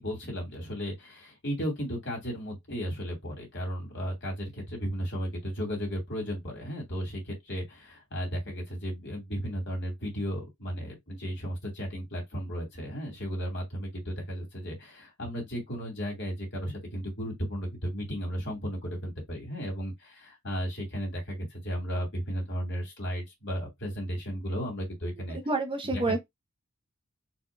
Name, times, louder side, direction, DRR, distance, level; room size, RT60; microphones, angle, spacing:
voice 1, 0.0-25.4 25.9-26.2, equal, 55° left, 2.7 m, -34 dB
voice 2, 25.3-26.2, right 3 dB, 25° right, 0.9 m, -28 dB
4.4 x 3.6 x 2.6 m
head